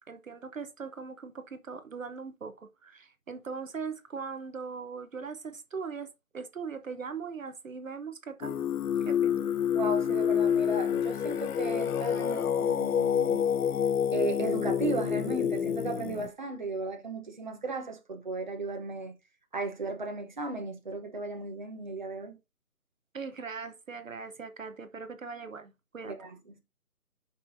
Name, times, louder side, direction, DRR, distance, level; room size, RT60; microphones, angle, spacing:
voice 1, 0.1-6.1 6.3-8.5 9.1-9.4 23.1-26.2, right 5 dB, 60° right, 1.0 m, -40 dB
Singing, 8.4-16.3, left 8 dB, 75° left, 0.6 m, -28 dB
voice 2, 9.7-13.5 14.1-19.1 19.5-22.3 26.0-26.4, right 3 dB, 30° right, 1.0 m, -35 dB
11.5 x 5.4 x 2.6 m
hypercardioid pair, 175°, 45 cm